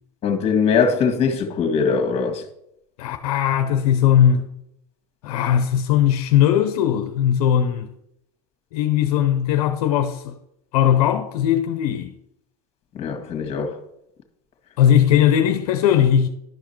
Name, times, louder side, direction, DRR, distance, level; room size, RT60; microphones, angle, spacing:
voice 1, 0.2-2.4 12.9-13.7, left 5 dB, 30° left, 1.9 m, -21 dB
voice 2, 3.0-4.5 5.2-7.9 8.7-10.4 10.7-12.1 14.8-16.3, left 9 dB, 70° left, 0.8 m, -18 dB
11.5 x 4.9 x 4.5 m
supercardioid pair, 120°, 20 cm